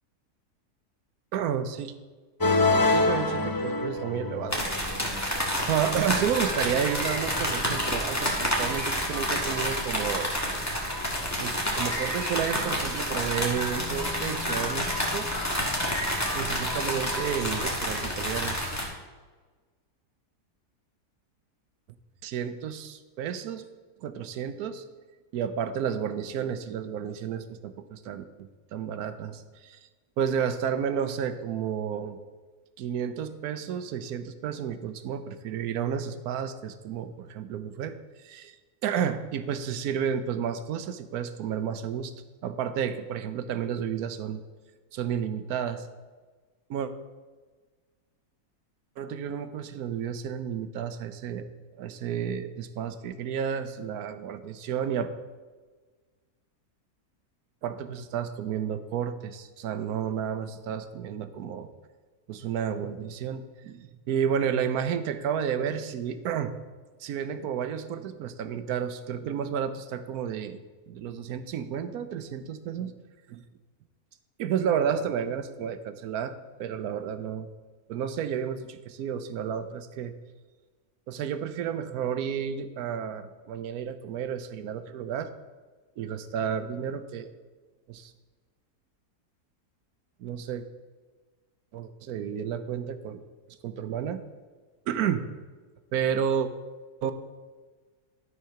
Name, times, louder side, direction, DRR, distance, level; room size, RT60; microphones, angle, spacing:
voice 1, 1.3-1.9 2.9-4.6 5.7-10.3 11.4-15.3 16.3-18.6 22.2-23.7 24.0-24.8 25.3-28.2 28.7-29.8 30.2-32.2 32.8-37.9 38.2-38.6 38.8-42.1 42.4-44.4 44.9-45.9 46.7-46.9 49.0-51.5 51.7-55.1 57.6-61.7 62.3-66.6 67.0-72.9 73.3-73.4 74.4-77.5 77.9-80.1 81.1-85.3 86.0-87.3 87.9-88.1 90.2-90.6 91.7-93.2 93.6-94.2 94.9-95.2 95.9-96.5 97.0-97.1, right 8 dB, 75° right, 11 dB, 1.1 m, -31 dB
sound 1, 2.4-17.8, left 3 dB, 30° left, 0.4 m, -32 dB
sound 2, 4.5-18.8, equal, 10° left, 1.4 m, -29 dB
12.0 x 4.7 x 5.6 m, 1.4 s
omnidirectional pair, 1.7 m